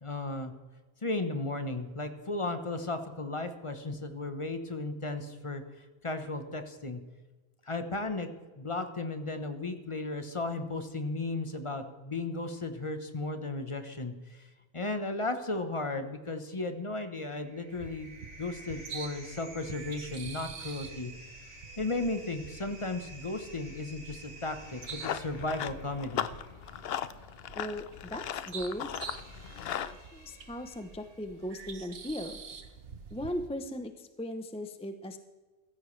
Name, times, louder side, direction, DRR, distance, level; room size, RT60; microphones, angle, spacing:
voice 1, 0.0-0.5 1.0-5.6 6.0-7.0 7.7-8.3 8.6-14.4 14.7-18.1 18.4-21.1 21.8-26.3, left 2 dB, 30° left, 8 dB, 1.0 m, -35 dB
sound 1, 16.8-31.4, right 2 dB, 80° right, 4.3 m, -52 dB
sound 2, 17.7-33.5, right 5 dB, 60° right, 1.2 m, -47 dB
Run, 24.6-29.9, left 9 dB, 65° left, 0.8 m, -37 dB
voice 2, 27.6-28.9 29.5-29.7 30.0-32.4 33.1-35.2, equal, 5° left, 8 dB, 0.5 m, -38 dB
15.5 x 13.5 x 3.2 m, 1.3 s
omnidirectional pair, 1.2 m